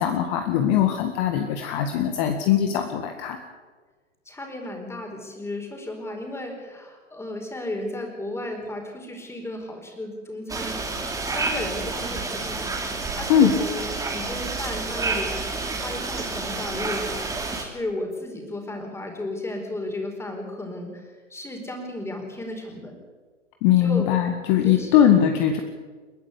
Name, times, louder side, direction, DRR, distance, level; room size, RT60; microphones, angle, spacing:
voice 1, 0.0-3.4 13.3-13.5 23.6-25.6, left 9 dB, 35° left, 5 dB, 1.9 m, -20 dB
voice 2, 4.2-10.8 11.2-12.7 13.1-17.2 17.5-23.0 23.8-24.1 24.6-25.1, left 1 dB, 5° left, 2 dB, 4.6 m, -34 dB
sound 1, 10.5-17.6, right 3 dB, 10° right, 2.9 m, -29 dB
30.0 x 11.0 x 8.3 m, 1.4 s
figure-of-eight pair, 115°, 38 cm